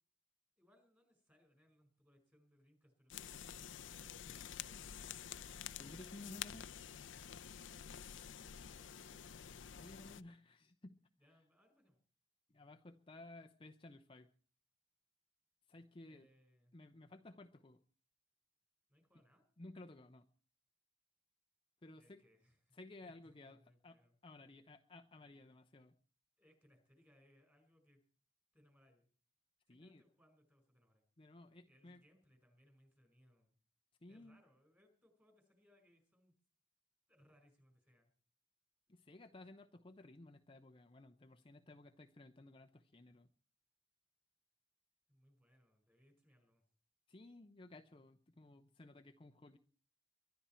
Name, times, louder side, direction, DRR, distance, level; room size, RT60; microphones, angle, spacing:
voice 1, 0.6-5.5 8.2-9.3 11.2-12.0 16.1-16.8 18.9-19.5 22.0-24.1 26.4-28.0 28.5-29.1 29.7-31.0 31.7-33.6 34.1-36.3 37.1-38.1 45.1-46.6, equal, 10° right, 5 dB, 5.1 m, -71 dB
sound 1, 3.1-10.2, left 9 dB, 70° left, 0.6 m, -49 dB
voice 2, 5.8-6.7 9.7-10.9 12.5-14.3 15.7-16.3 16.7-17.8 19.6-20.2 21.8-22.2 22.7-25.9 29.7-30.0 31.2-32.0 34.0-34.4 38.9-43.3 47.1-49.6, left 2 dB, 30° left, 5 dB, 0.7 m, -56 dB
23.5 x 11.5 x 4.4 m, 0.42 s
head